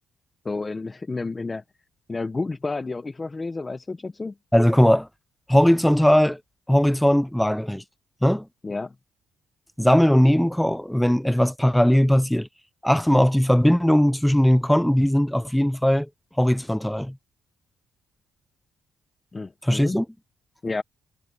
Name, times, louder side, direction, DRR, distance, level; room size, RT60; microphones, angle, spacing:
voice 1, 0.4-1.6 2.1-4.3 8.6-8.9 19.3-20.0 20.6-20.8, left 3 dB, 25° left, 1.5 m, -30 dB
voice 2, 4.5-5.1 5.5-6.4 6.7-7.8 8.2-8.5 9.8-12.5 12.8-16.1 16.4-17.2 19.6-20.0, equal, 5° left, 1.0 m, -19 dB
cardioid pair, 90°, 0 cm